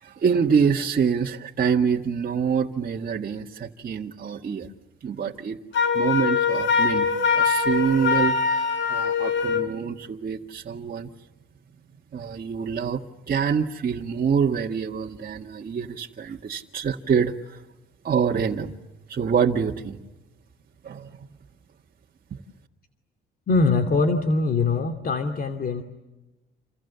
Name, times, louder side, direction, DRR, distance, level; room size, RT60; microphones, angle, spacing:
voice 1, 0.0-4.7 5.0-5.6 5.9-11.1 12.1-17.6 18.0-18.7 19.1-20.0 20.8-21.3, right 6 dB, 45° right, -1 dB, 2.0 m, -26 dB
Wind instrument woodwind instrument, 5.7-9.7, left 5 dB, 75° left, 4.4 m, -22 dB
voice 2, 23.5-25.8, left 3 dB, 50° left, 7 dB, 2.7 m, -22 dB
29.0 x 28.5 x 7.0 m, 1.0 s
cardioid pair, 90°, 20 cm